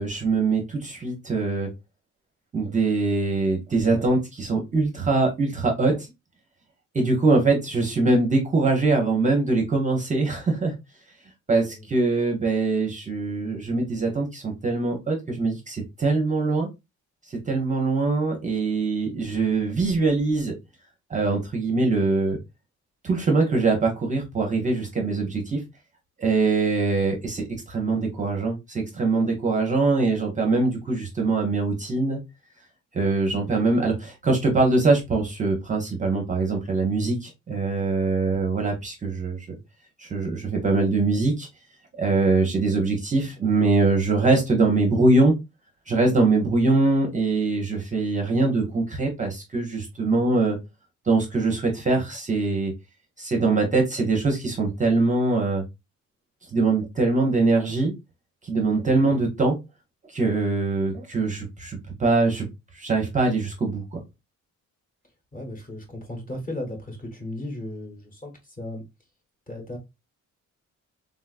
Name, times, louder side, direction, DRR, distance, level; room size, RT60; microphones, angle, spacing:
voice 1, 0.0-1.7 2.5-6.0 6.9-10.7 11.5-16.7 17.3-20.5 21.1-22.4 23.0-25.6 26.2-32.2 32.9-39.5 40.0-41.5 42.0-45.3 45.9-50.6 51.1-52.7 53.2-55.6 56.5-57.9 58.4-59.6 60.1-62.5 62.7-64.0, right 3 dB, 25° right, 0.6 m, -23 dB
voice 2, 65.3-68.3 68.6-68.8 69.5-69.8, left 1 dB, 25° left, 1.0 m, -35 dB
3.6 x 2.3 x 2.3 m
wide cardioid pair, 175°, 30 cm